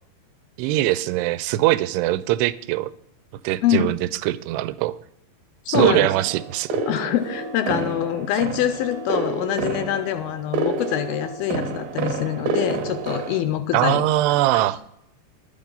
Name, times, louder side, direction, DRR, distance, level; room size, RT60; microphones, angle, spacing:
voice 1, 0.6-2.9 3.4-5.0 5.7-6.8 13.7-14.8, right 16 dB, 90° right, 15 dB, 2.7 m, -22 dB
voice 2, 3.6-3.9 5.7-6.1 6.8-14.1 14.5-14.6, left 11 dB, 80° left, 10 dB, 2.2 m, -25 dB
sound 1, 5.7-13.4, right 4 dB, 70° right, 2.5 m, -29 dB
11.5 x 9.0 x 5.3 m, 0.77 s
omnidirectional pair, 4.7 m